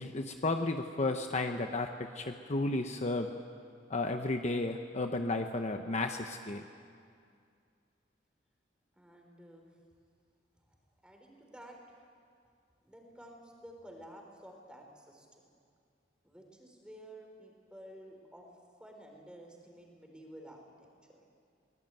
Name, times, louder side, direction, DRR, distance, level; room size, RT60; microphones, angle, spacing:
voice 1, 0.0-3.3 3.9-6.7, left 2 dB, 35° left, 5 dB, 0.9 m, -33 dB
voice 2, 9.0-9.7 11.0-11.8 12.8-15.3 16.2-18.5 18.8-21.2, right 1 dB, 5° right, 2 dB, 3.9 m, -52 dB
23.5 x 19.5 x 9.1 m, 2.3 s
head